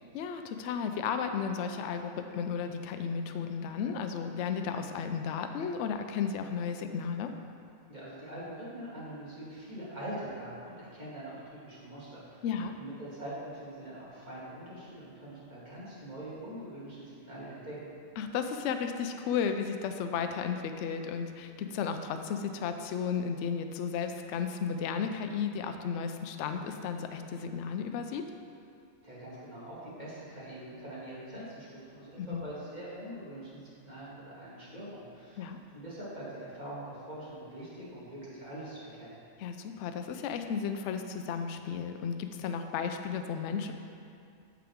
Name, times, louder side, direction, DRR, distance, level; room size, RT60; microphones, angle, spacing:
voice 1, 0.1-7.3 12.4-12.7 18.2-28.2 32.2-32.4 35.4-35.6 39.4-43.7, left 6 dB, 70° left, 6 dB, 0.8 m, -34 dB
voice 2, 7.9-12.5 12.8-17.9 29.0-39.2, right 1 dB, 30° right, -9 dB, 2.5 m, -43 dB
13.5 x 4.9 x 3.6 m, 2.4 s
omnidirectional pair, 1.4 m